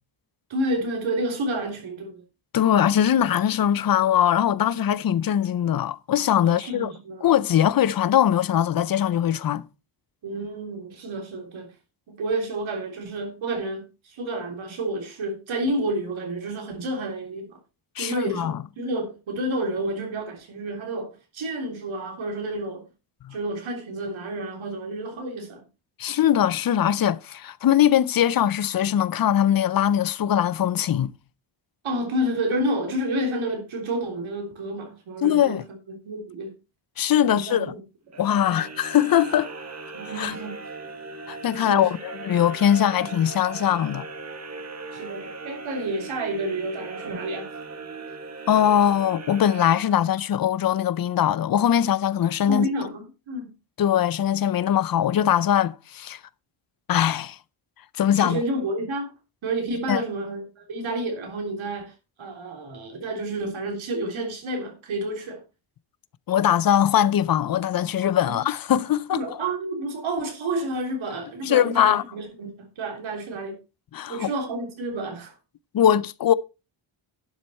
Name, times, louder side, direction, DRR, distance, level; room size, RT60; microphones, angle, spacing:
voice 1, 0.5-2.2 6.4-7.2 10.2-11.7 12.1-17.6 18.0-22.9 23.3-25.6 31.8-35.6 35.9-36.5 37.2-37.8 38.3-38.7 39.9-40.7 41.6-42.0 44.9-47.5 52.5-53.5 58.1-59.1 59.4-65.4 68.2-68.4 69.1-73.6 74.1-75.3, right 1 dB, 70° right, 3.5 m, -30 dB
voice 2, 2.5-6.9 7.2-9.6 18.0-18.6 23.2-23.3 26.0-31.1 35.2-35.6 37.0-37.7 38.2-39.5 40.2-40.3 41.3-44.1 48.5-52.7 53.8-56.2 56.9-57.4 58.0-58.4 59.9-60.0 66.3-69.2 71.4-72.0 73.9-74.3 75.7-76.3, left 10 dB, 45° left, 0.6 m, -21 dB
sound 1, 38.1-50.4, right 3 dB, 30° right, 1.7 m, -38 dB
11.5 x 7.8 x 4.3 m
wide cardioid pair, 165°, 50 cm